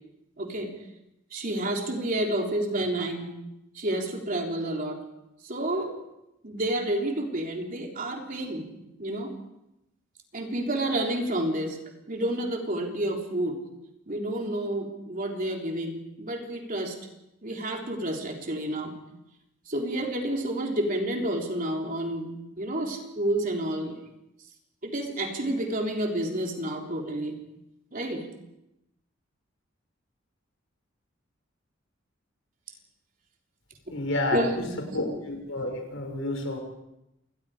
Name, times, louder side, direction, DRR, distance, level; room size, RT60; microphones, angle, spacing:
voice 1, 0.4-0.7 1.3-3.3 3.7-5.0 5.4-5.9 6.4-8.7 9.0-9.3 10.3-11.8 12.1-13.6 14.1-17.0 17.4-18.9 19.7-22.3 22.6-24.0 24.8-27.4 27.9-28.3 34.3-35.0, right 1 dB, 45° right, 1 dB, 3.6 m, -29 dB
voice 2, 33.9-34.6 34.9-36.6, left 2 dB, 80° left, 3 dB, 6.2 m, -30 dB
28.0 x 20.5 x 5.0 m, 0.89 s
head